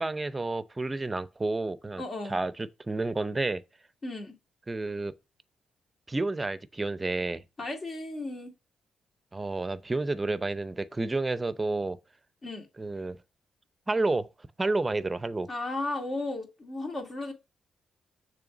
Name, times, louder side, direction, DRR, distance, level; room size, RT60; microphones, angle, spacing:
voice 1, 0.0-3.6 4.7-5.1 6.1-7.4 9.3-12.0 12.8-13.2 13.9-14.3 14.6-15.5, right 2 dB, 25° right, 0.6 m, -30 dB
voice 2, 2.0-2.4 4.0-4.4 7.6-8.5 12.4-12.7 15.5-17.3, left 2 dB, 45° left, 2.1 m, -34 dB
6.7 x 3.3 x 6.0 m
cardioid pair, 70°, 0 cm